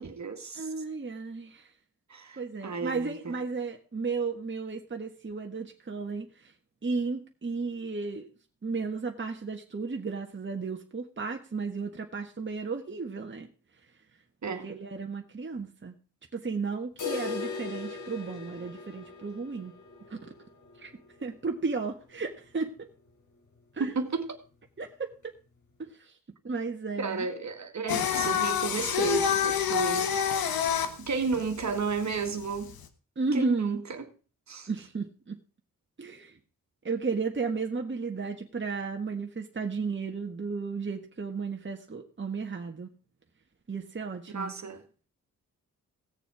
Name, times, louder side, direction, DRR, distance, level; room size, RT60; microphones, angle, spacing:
voice 1, 0.0-0.7 2.1-3.3 14.4-14.8 23.8-24.4 27.0-30.4 31.0-32.7 33.3-34.1 34.5-34.7 44.3-44.8, right 4 dB, 50° right, 2.0 m, -33 dB
voice 2, 0.6-1.7 2.4-6.5 6.8-8.3 8.6-13.5 14.6-16.0 16.3-19.7 20.1-20.2 20.8-20.9 21.2-22.9 23.7-23.9 24.8-25.1 25.8-26.1 26.4-27.3 33.2-33.8 34.7-35.4 36.0-36.3 36.8-42.9 43.7-44.5, right 4 dB, 35° right, 1.6 m, -34 dB
sound 1, 17.0-22.8 23.1-23.2 23.6-23.7 24.2-24.3 25.1-25.2, left 5 dB, 55° left, 3.3 m, -40 dB
Singing, 27.9-32.8, left 8 dB, 85° left, 1.3 m, -28 dB
17.0 x 6.9 x 4.8 m
cardioid pair, 60°, 35 cm